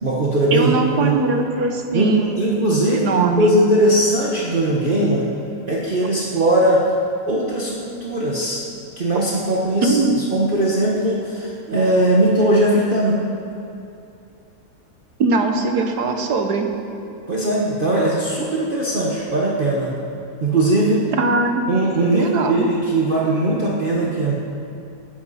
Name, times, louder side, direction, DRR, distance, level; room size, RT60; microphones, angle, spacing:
voice 1, 0.0-1.2 1.9-5.3 5.7-6.9 7.3-8.6 9.0-13.2 17.3-19.9 20.4-21.0 21.7-24.3, right 1 dB, 35° right, -5 dB, 1.4 m, -19 dB
voice 2, 0.5-2.4 2.9-3.6 9.8-10.2 15.2-16.7 21.2-21.6 22.1-22.7, right 3 dB, 90° right, 4 dB, 1.7 m, -20 dB
18.5 x 10.5 x 4.2 m, 2.7 s
omnidirectional pair, 1.7 m